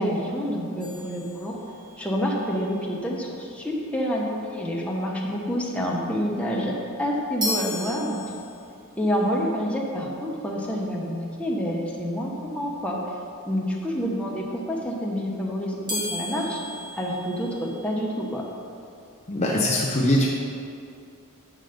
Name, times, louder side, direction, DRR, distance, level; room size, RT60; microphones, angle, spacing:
voice 1, 0.0-1.6 2.0-6.7 7.0-8.2 8.9-13.0 13.5-16.6 16.9-18.4, equal, 5° left, -3 dB, 1.1 m, -28 dB
sound 1, 0.8-2.1 7.4-8.9 15.9-18.0, left 1 dB, 20° right, 1.4 m, -34 dB
voice 2, 19.3-20.3, left 1 dB, 30° left, -3 dB, 0.7 m, -22 dB
8.1 x 6.1 x 5.2 m, 2.5 s
head